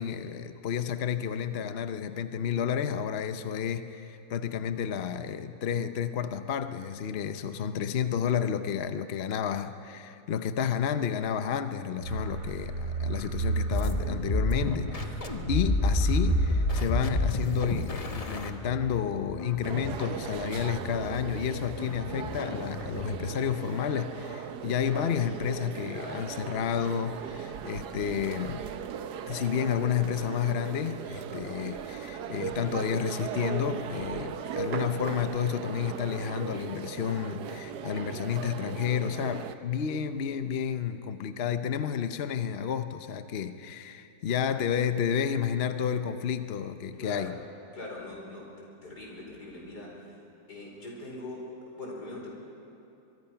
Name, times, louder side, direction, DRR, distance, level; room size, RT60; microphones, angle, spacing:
voice 1, 0.0-28.6 29.3-47.4, left 8 dB, 50° left, 9 dB, 0.9 m, -31 dB
sound 1, 12.0-18.5, right 3 dB, 60° right, 1.5 m, -34 dB
sound 2, 13.7-23.4, left 2 dB, 25° left, 1.1 m, -31 dB
sound 3, 19.6-39.5, right 8 dB, 90° right, 1.4 m, -38 dB
voice 2, 25.9-26.3 47.0-47.3 47.7-50.0 50.5-52.3, left 2 dB, 85° left, -2 dB, 5.2 m, -42 dB
23.5 x 23.0 x 5.8 m, 2.7 s
omnidirectional pair, 1.7 m